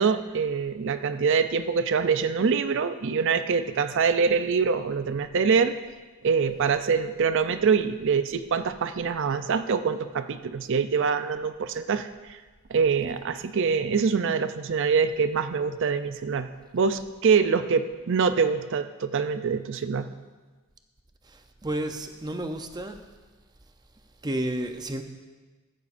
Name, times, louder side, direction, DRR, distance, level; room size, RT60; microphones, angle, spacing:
voice 1, 0.0-5.7 6.2-12.4 12.7-20.1, right 5 dB, 55° right, 11 dB, 0.5 m, -25 dB
voice 2, 21.2-23.0 24.2-25.0, right 1 dB, 20° right, 6 dB, 0.6 m, -31 dB
15.0 x 12.0 x 2.6 m, 1.3 s
head